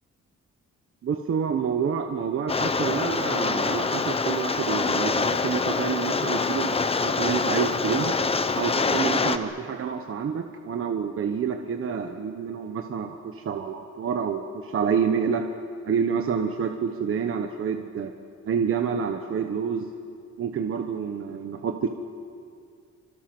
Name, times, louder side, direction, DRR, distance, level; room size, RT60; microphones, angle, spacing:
voice 1, 1.0-8.2 8.5-15.4 15.8-18.1 18.4-19.9 20.4-21.9, right 7 dB, 45° right, 5 dB, 1.2 m, -28 dB
Rain, 2.5-9.4, left 4 dB, 20° left, 0.8 m, -25 dB
27.0 x 25.5 x 6.2 m, 2.3 s
wide cardioid pair, 180°, 29 cm